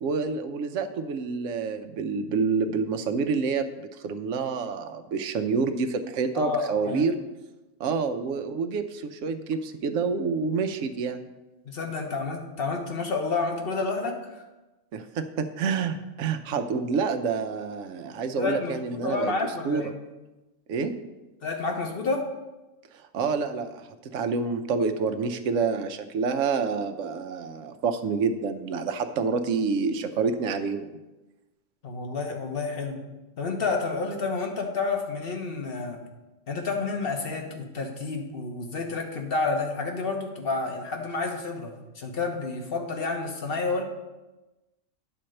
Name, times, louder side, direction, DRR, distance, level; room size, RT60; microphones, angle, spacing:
voice 1, 0.0-7.2 7.8-11.2 14.9-19.3 19.6-19.8 20.7-20.9 23.1-23.9 24.1-30.9, right 5 dB, 70° right, 7 dB, 1.0 m, -28 dB
voice 2, 6.3-7.1 11.6-14.4 18.4-20.0 21.4-22.3 31.8-33.0 33.4-36.0 36.5-43.8, left 3 dB, 45° left, 3 dB, 1.3 m, -30 dB
10.0 x 4.4 x 6.5 m, 1.1 s
omnidirectional pair, 1.4 m